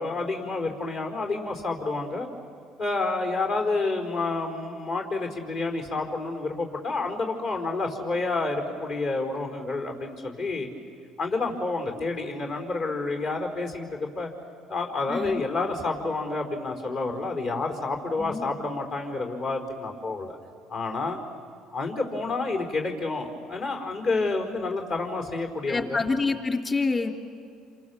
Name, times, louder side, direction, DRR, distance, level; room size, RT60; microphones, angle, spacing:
voice 1, 0.0-2.3 2.8-10.7 11.2-14.3 14.7-20.4 20.7-21.2 21.7-26.0, left 3 dB, 65° left, 2 dB, 4.7 m, -29 dB
voice 2, 15.1-15.4 18.2-18.5 25.7-27.1, left 4 dB, 30° left, 4 dB, 3.1 m, -27 dB
28.0 x 27.0 x 7.2 m, 2.3 s
supercardioid pair, 90°, 0 cm